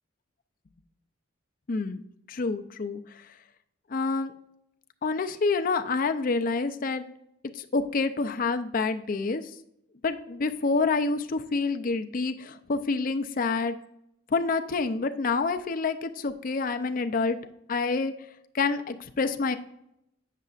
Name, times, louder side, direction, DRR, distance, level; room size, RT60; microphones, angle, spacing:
voice 1, 1.7-2.0 2.3-3.3 3.9-4.3 5.0-7.0 7.5-9.5 10.0-13.7 14.3-17.4 17.7-18.1 18.5-19.6, left 4 dB, 45° left, 8 dB, 0.4 m, -27 dB
8.2 x 6.6 x 2.4 m, 0.78 s
head